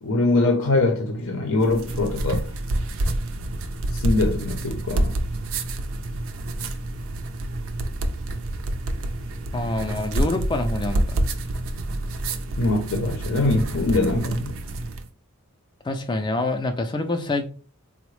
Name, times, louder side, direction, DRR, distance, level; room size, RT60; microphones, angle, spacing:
voice 1, 0.0-2.4 3.9-5.1 12.6-14.6, left 2 dB, 70° left, 0.6 m, -23 dB
sound 1, 1.6-15.1, right 1 dB, 65° right, 0.4 m, -28 dB
voice 2, 9.5-11.3 15.8-17.4, left 2 dB, 20° left, 0.3 m, -26 dB
3.7 x 2.1 x 3.1 m
head